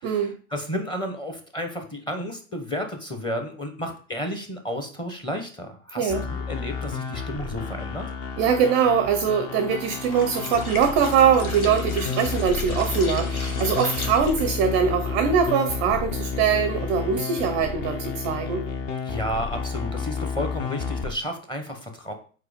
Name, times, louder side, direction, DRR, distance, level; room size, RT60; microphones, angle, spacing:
voice 1, 0.0-8.1 19.0-22.1, equal, 10° left, 5 dB, 1.0 m, -32 dB
sound 1, 6.1-21.1, left 5 dB, 25° left, 0.6 m, -31 dB
voice 2, 8.4-18.6, right 6 dB, 25° right, 7 dB, 0.5 m, -22 dB
sound 2, 9.9-14.6, left 3 dB, 90° left, 1.6 m, -36 dB
4.8 x 4.4 x 5.0 m, 0.41 s
hypercardioid pair, 130°, 42 cm